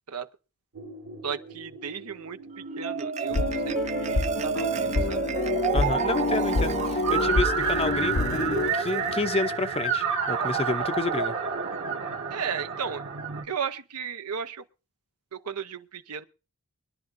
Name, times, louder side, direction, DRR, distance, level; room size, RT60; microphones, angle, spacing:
sound 1, 0.7-13.4, right 6 dB, 60° right, 1.6 m, -31 dB
voice 1, 1.2-2.4 2.8-5.2 12.3-13.0 13.4-14.6 15.3-16.2, right 7 dB, 85° right, 0.9 m, -35 dB
Marimba xylophone, 2.5-9.2, right 4 dB, 30° right, 0.5 m, -32 dB
sound 2, 3.3-8.7, left 3 dB, 55° left, 0.8 m, -28 dB
voice 2, 5.7-11.4, left 2 dB, 25° left, 0.7 m, -30 dB
23.5 x 11.0 x 2.6 m
head